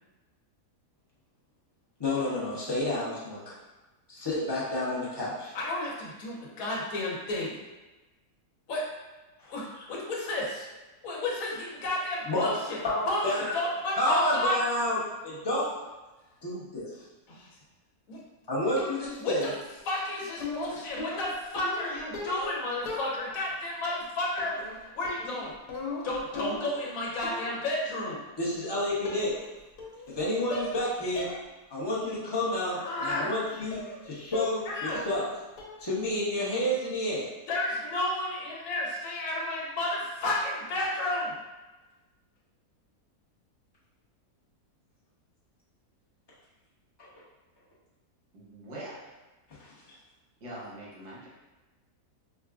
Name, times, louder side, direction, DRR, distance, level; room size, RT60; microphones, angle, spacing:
voice 1, 2.0-3.6 4.1-5.5 9.4-9.5 12.3-12.5 12.8-13.5 14.0-15.0 15.2-15.7 16.4-16.9 18.5-19.5 28.4-29.4 30.1-31.3 31.7-35.2 35.8-37.3 49.6-50.0, left 1 dB, 25° left, -8 dB, 0.6 m, -30 dB
voice 2, 5.5-7.6 8.7-8.8 9.5-10.7 11.0-12.8 13.1-14.6 17.3-17.5 18.1-18.2 19.2-19.5 19.8-25.5 26.0-28.2 32.6-33.3 34.7-35.0 37.5-41.4, left 1 dB, 65° left, -3 dB, 1.2 m, -32 dB
sound 1, 18.8-19.3 20.4-22.6 22.9-23.5 24.4-24.8 25.0-26.8 27.2-27.6 28.5-28.6 29.0-29.5 29.8-30.2 30.5-30.8 31.2-31.4 31.8-31.9 33.1-33.3 33.7-34.0 34.3-34.7 34.9-35.3 35.6-35.9, left 3 dB, 85° left, 1.3 m, -38 dB
voice 3, 48.3-49.1 49.7-49.8 50.4-51.3, right 1 dB, 75° right, -6 dB, 1.6 m, -43 dB
4.9 x 2.2 x 2.4 m, 1.1 s
omnidirectional pair, 1.7 m